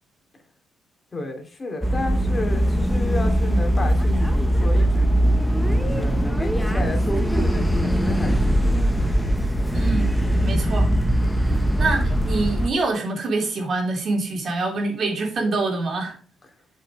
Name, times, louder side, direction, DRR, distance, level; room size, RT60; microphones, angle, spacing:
voice 1, 1.1-5.1 5.8-9.1, left 1 dB, 30° left, 2.7 m, -32 dB
sound 1, 1.8-12.7, equal, 5° left, 1.1 m, -21 dB
voice 2, 9.7-10.1 10.4-10.9 11.3-16.2, right 3 dB, 55° right, 2.9 m, -25 dB
7.5 x 5.6 x 4.8 m
cardioid pair, 90°, 0 cm